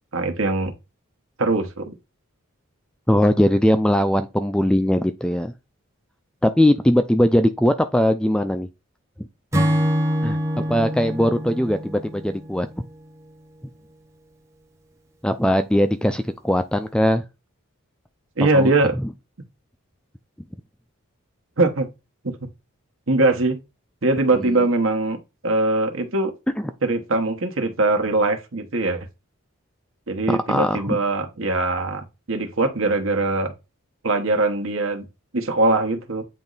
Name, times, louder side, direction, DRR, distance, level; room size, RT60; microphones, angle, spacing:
voice 1, 0.1-0.7 1.4-1.9 18.4-18.9 21.6-21.9 22.2-22.3 23.1-23.6 24.0-26.3 26.8-29.1 30.1-33.5 34.0-35.1 35.3-36.2, right 2 dB, 70° right, 1.2 m, -21 dB
voice 2, 3.1-5.5 6.4-8.7 10.2-12.7 15.2-17.2 18.5-18.7 19.0-19.1 24.5-24.6 26.6-26.7 30.3-31.0, equal, 5° left, 0.3 m, -20 dB
Acoustic guitar / Strum, 9.5-13.0, equal, 15° right, 0.9 m, -25 dB
8.8 x 3.1 x 4.0 m
head